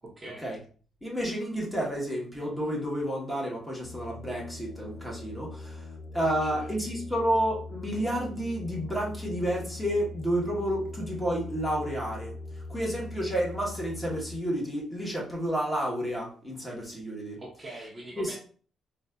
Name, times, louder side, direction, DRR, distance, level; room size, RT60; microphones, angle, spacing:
voice 1, 0.0-0.5 6.2-6.9 17.4-18.4, right 2 dB, 25° right, -3 dB, 1.0 m, -42 dB
voice 2, 1.0-12.4 12.7-17.4 18.2-18.4, equal, 10° left, -3 dB, 1.4 m, -30 dB
sound 1, 3.8-14.4, left 2 dB, 80° left, 0.4 m, -41 dB
4.0 x 2.5 x 2.4 m, 0.42 s
cardioid pair, 90°, 0 cm